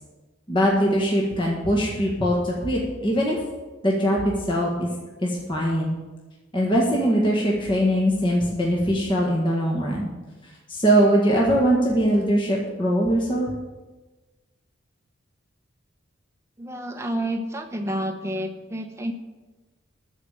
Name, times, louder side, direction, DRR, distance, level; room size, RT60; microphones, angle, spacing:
voice 1, 0.5-3.4 3.8-4.9 5.2-6.0 6.5-10.1 10.7-13.5, equal, 25° left, -3 dB, 1.7 m, -21 dB
voice 2, 16.6-19.1, right 1 dB, 15° right, 4 dB, 0.9 m, -29 dB
14.0 x 5.0 x 9.0 m, 1.2 s
head